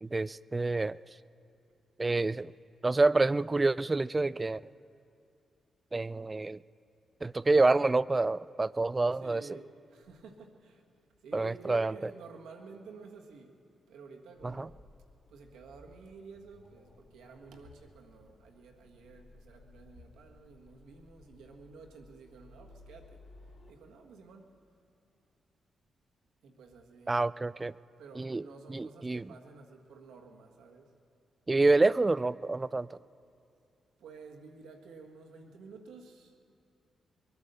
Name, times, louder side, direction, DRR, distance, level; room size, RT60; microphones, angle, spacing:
voice 1, 0.0-1.0 2.0-2.5 2.8-4.6 5.9-6.6 7.2-9.4 11.3-11.9 14.4-14.7 27.1-27.7 28.2-28.4 28.7-29.3 31.5-33.0, right 3 dB, 30° right, 19 dB, 0.3 m, -27 dB
voice 2, 9.2-10.8 11.2-13.6 13.9-14.8 15.3-23.2 23.7-24.6 26.4-27.2 28.0-30.9 34.0-36.3, right 4 dB, 75° right, 2 dB, 1.5 m, -51 dB
sound 1, 14.3-23.7, left 2 dB, 70° left, 3.2 m, -58 dB
22.0 x 9.5 x 6.7 m, 2.6 s
hypercardioid pair, 40°, 0 cm